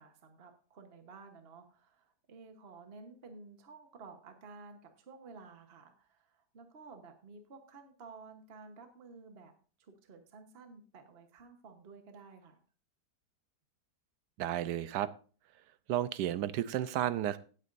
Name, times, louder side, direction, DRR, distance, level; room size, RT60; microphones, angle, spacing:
voice 1, 0.0-9.5 9.8-12.6, right 4 dB, 40° right, 5 dB, 1.3 m, -53 dB
voice 2, 14.4-15.1 15.9-17.4, right 12 dB, 80° right, 14 dB, 1.3 m, -32 dB
16.5 x 8.5 x 2.6 m, 0.40 s
omnidirectional pair, 1.8 m